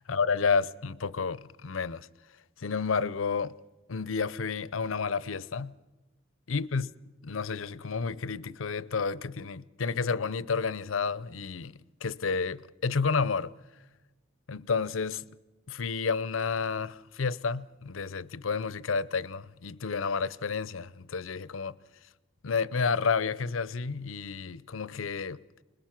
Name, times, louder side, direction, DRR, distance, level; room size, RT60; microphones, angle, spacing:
voice 1, 0.1-2.1 2.6-3.5 3.9-5.7 6.5-6.9 7.2-13.5 14.5-15.2 15.7-21.8 22.4-25.4, left 5 dB, 80° left, 0.6 m, -30 dB
27.0 x 21.0 x 5.9 m
head